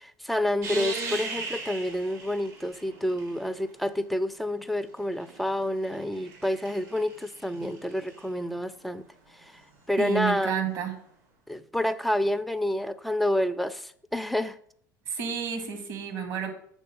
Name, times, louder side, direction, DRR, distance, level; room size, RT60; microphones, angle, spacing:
voice 1, 0.0-9.0 9.9-10.6 11.5-14.6, left 1 dB, ahead, 0.4 m, -28 dB
sound 1, 0.6-3.7 4.8-8.3 10.6-10.7, right 3 dB, 70° right, 1.9 m, -38 dB
voice 2, 10.0-10.9 15.1-16.5, right 7 dB, 55° right, 1.6 m, -30 dB
6.3 x 4.1 x 5.3 m
figure-of-eight pair, 70°, 10 cm